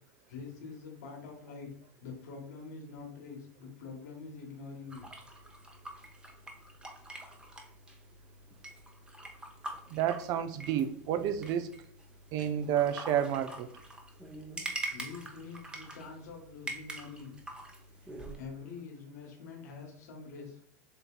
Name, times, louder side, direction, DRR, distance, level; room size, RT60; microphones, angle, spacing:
voice 1, 0.3-1.7 2.0-5.1 14.9-17.4 18.0-20.6, left 5 dB, 70° left, 0 dB, 1.3 m, -45 dB
Paintbrush being cleaned in a jar - slower version, 4.9-18.4, right 1 dB, 10° right, 0.8 m, -45 dB
voice 2, 9.9-11.7 12.3-13.7, right 10 dB, 45° right, 10 dB, 0.5 m, -30 dB
6.9 x 2.7 x 2.2 m, 0.62 s
hypercardioid pair, 90°, 9 cm